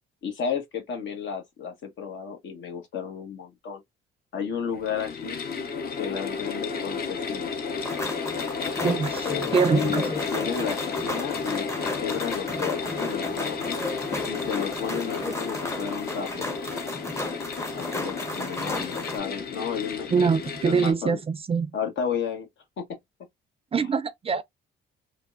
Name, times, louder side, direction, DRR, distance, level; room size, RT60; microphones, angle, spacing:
voice 1, 0.2-3.8 4.3-5.4 6.0-7.5 8.8-9.0 9.2-13.8 14.3-16.5 17.7-20.3 20.6-21.2 21.7-22.5 22.8-22.9 23.7-23.9, left 7 dB, 70° left, 1.1 m, -32 dB
sound 1, 4.7-20.9, left 5 dB, 50° left, 0.7 m, -32 dB
sound 2, 7.8-19.2, left 2 dB, 15° left, 0.7 m, -34 dB
voice 2, 8.8-10.0 20.1-21.7 23.7-24.4, right 5 dB, 30° right, 0.3 m, -24 dB
3.4 x 2.1 x 2.4 m
cardioid pair, 90°, 20 cm